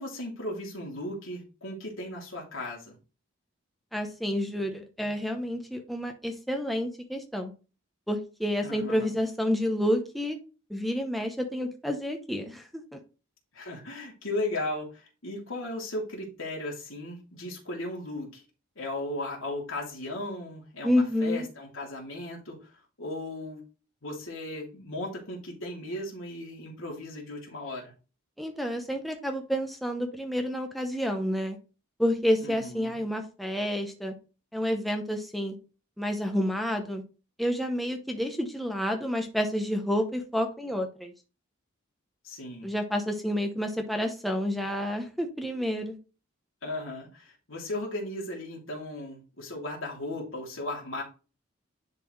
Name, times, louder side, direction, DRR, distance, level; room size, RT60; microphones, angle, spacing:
voice 1, 0.0-2.9 8.6-9.1 13.5-18.4 18.8-22.7 23.0-23.7 24.0-27.9 32.4-33.0 42.2-42.7 46.6-51.0, left 1 dB, 75° left, -1 dB, 2.9 m, -36 dB
voice 2, 3.9-7.5 8.1-10.4 10.7-13.0 20.8-21.5 28.4-31.6 32.0-34.1 34.5-35.5 36.0-37.0 37.4-41.1 42.6-46.0, equal, ahead, 3 dB, 0.8 m, -29 dB
10.5 x 4.2 x 3.2 m, 0.33 s
head